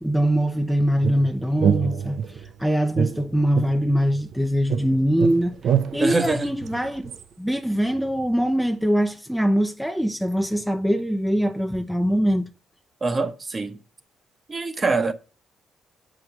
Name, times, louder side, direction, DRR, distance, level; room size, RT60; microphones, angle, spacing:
voice 1, 0.0-5.6 5.9-7.1 7.4-12.5, equal, ahead, 0.7 m, -23 dB
sound 1, 1.0-2.5 2.9-4.4 4.7-7.2, right 8 dB, 65° right, 0.7 m, -26 dB
voice 2, 6.0-6.5 13.0-13.8 14.5-15.1, right 3 dB, 30° right, 1.1 m, -24 dB
7.6 x 5.0 x 7.3 m
cardioid pair, 90°, 0 cm